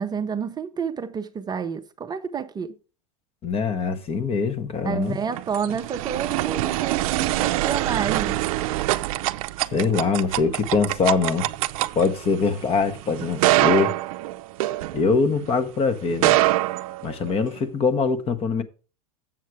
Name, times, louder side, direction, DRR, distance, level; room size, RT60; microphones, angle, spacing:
voice 1, 0.0-2.7 4.8-8.4, right 7 dB, 20° right, 0.6 m, -29 dB
voice 2, 3.4-5.2 9.7-11.5 11.9-13.9 14.9-16.4 17.0-18.6, left 4 dB, 30° left, 1.0 m, -23 dB
sound 1, 5.1-15.5 16.1-17.6, right 17 dB, 65° right, 0.5 m, -25 dB
7.5 x 6.5 x 4.7 m
hypercardioid pair, 110°, 19 cm